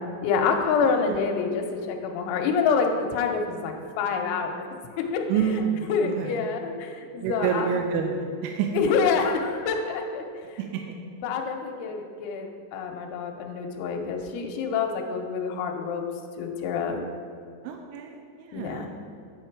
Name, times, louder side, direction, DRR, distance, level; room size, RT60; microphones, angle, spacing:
voice 1, 0.2-4.7 5.1-5.2 5.9-7.7 8.7-10.2 11.2-16.0 16.4-17.0 18.5-18.9, left 5 dB, 80° left, 3 dB, 2.9 m, -27 dB
voice 2, 0.8-1.2 5.3-6.4 7.2-8.8 10.6-11.0 15.5-15.6 17.6-18.9, right 7 dB, 85° right, 3 dB, 2.9 m, -28 dB
9.5 x 5.7 x 4.6 m, 2.3 s
omnidirectional pair, 5.6 m